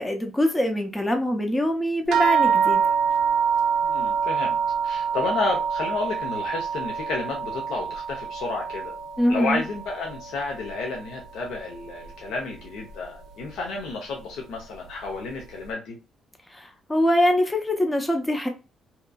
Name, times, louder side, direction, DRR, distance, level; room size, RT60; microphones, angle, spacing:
voice 1, 0.0-2.8 9.2-9.6 16.5-18.5, equal, 15° left, 4 dB, 0.6 m, -23 dB
sound 1, 2.1-10.9 11.2-12.1 12.9-13.0 13.4-13.5, right 7 dB, 85° right, 0.5 m, -26 dB
voice 2, 3.8-4.6 4.8-8.9 9.3-16.0, left 3 dB, 85° left, 0 dB, 0.7 m, -31 dB
2.9 x 2.4 x 2.2 m, 0.30 s
cardioid pair, 95°, 0 cm